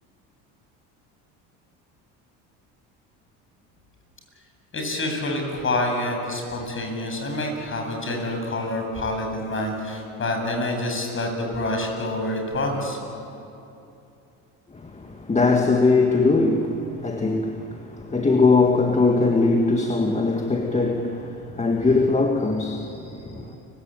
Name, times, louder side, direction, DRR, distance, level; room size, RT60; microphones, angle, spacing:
voice 1, 4.7-13.0, left 1 dB, 35° left, 7.9 m, -27 dB
voice 2, 14.9-23.6, left 3 dB, 20° left, 1.9 m, -21 dB
30.0 x 16.5 x 9.1 m
supercardioid pair, 90°, 37 cm